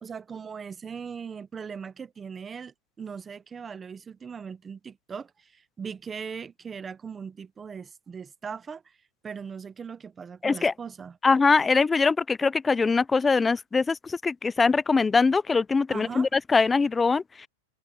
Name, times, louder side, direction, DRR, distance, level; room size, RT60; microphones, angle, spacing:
voice 1, 0.0-9.0 9.2-11.2 15.9-16.3, right 6 dB, 15° right, 0.8 m, -39 dB
voice 2, 10.4-10.7 11.2-17.5, left 4 dB, 10° left, 0.4 m, -22 dB
supercardioid pair, 155°, 0 cm